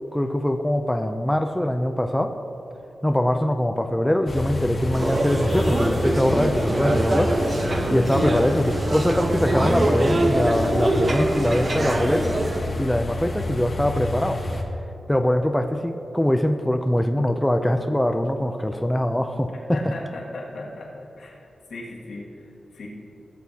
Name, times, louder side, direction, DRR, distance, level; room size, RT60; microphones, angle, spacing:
voice 1, 0.1-2.3 3.0-7.4 7.9-12.3 12.8-14.4 15.1-19.8, left 1 dB, 5° left, 5 dB, 0.4 m, -23 dB
sound 1, 4.3-14.6, left 1 dB, 35° left, 1.1 m, -29 dB
sound 2, 4.9-12.6, right 1 dB, 35° right, 0.9 m, -24 dB
voice 2, 19.7-21.3 21.7-22.9, left 2 dB, 85° left, -4 dB, 2.0 m, -37 dB
17.0 x 8.2 x 2.8 m, 2.8 s
wide cardioid pair, 145°, 0 cm